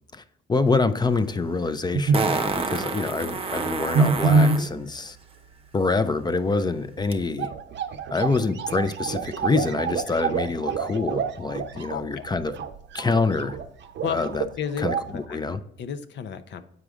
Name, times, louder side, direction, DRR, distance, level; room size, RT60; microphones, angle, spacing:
voice 1, 0.5-5.2 5.7-7.5 8.1-12.5 12.9-13.6 14.1-14.4 14.8-15.6, left 3 dB, 20° left, 11 dB, 0.6 m, -26 dB
Fart, 1.0-1.1 2.1-4.7 7.1-7.2, right 4 dB, 30° right, 0.8 m, -28 dB
sound 1, 1.2-1.3 1.9-2.4 3.9-4.7 7.0-7.1 7.3-14.5 14.8-15.2, right 4 dB, 65° right, 0.7 m, -26 dB
voice 2, 11.7-12.2 14.0-14.2 14.6-15.4 15.8-16.6, left 8 dB, 65° left, 9 dB, 0.7 m, -32 dB
7.9 x 4.9 x 3.6 m, 0.75 s
cardioid pair, 90°, 20 cm